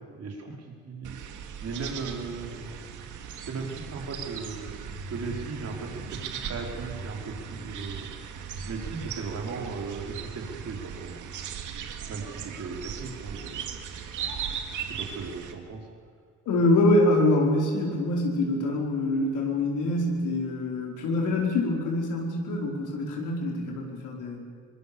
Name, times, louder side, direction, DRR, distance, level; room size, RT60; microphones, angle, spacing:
voice 1, 0.1-1.2 1.6-2.7 3.4-4.7 5.1-8.4 8.7-11.3 12.1-13.8 14.8-15.9, right 4 dB, 55° right, 1 dB, 4.7 m, -37 dB
sound 1, 1.0-15.5, right 7 dB, 80° right, 2.1 m, -38 dB
voice 2, 16.5-24.4, left 1 dB, 80° left, 0 dB, 4.6 m, -25 dB
23.0 x 20.0 x 7.0 m, 2.1 s
cardioid pair, 90°, 30 cm